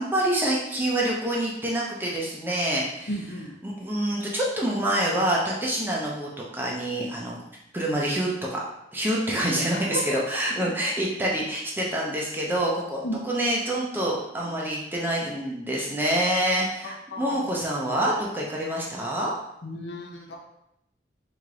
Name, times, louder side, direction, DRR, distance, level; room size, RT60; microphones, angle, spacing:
voice 1, 0.0-3.3 3.6-7.4 7.7-8.6 8.9-19.3, right 1 dB, 10° right, -3 dB, 0.6 m, -27 dB
voice 2, 3.1-3.5 9.7-10.0 13.0-13.2 17.1-17.3 19.6-20.4, equal, 70° left, 1 dB, 0.7 m, -33 dB
3.4 x 3.3 x 3.7 m, 0.81 s
head